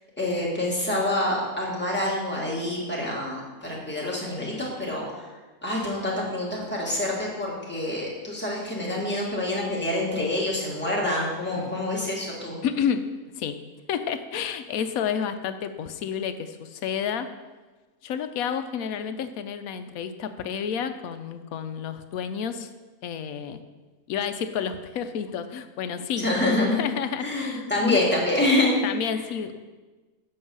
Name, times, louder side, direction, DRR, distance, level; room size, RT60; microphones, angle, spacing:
voice 1, 0.2-5.3 5.6-12.6 26.2-26.8 27.2-28.8, left 1 dB, 5° left, -5 dB, 2.2 m, -26 dB
voice 2, 11.4-11.8 12.6-13.1 13.3-13.6 13.9-17.3 18.0-22.7 23.0-23.6 24.1-26.3 26.7-28.0 28.8-29.6, left 7 dB, 70° left, 10 dB, 1.1 m, -30 dB
7.7 x 5.5 x 7.1 m, 1.2 s
omnidirectional pair, 1.6 m